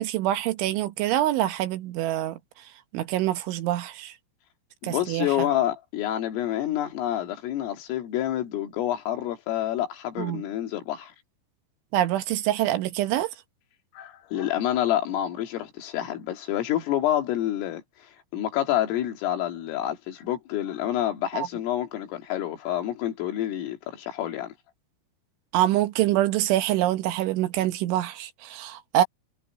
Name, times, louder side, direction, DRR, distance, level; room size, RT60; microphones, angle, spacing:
voice 1, 0.0-2.4 2.9-4.1 4.8-5.5 10.2-10.4 11.9-13.3 21.3-21.5 25.5-29.0, right 13 dB, 75° right, 3.3 m, -25 dB
voice 2, 4.8-11.1 13.9-17.8 18.3-24.5, left 12 dB, 75° left, 5.1 m, -28 dB
omnidirectional pair, 5.9 m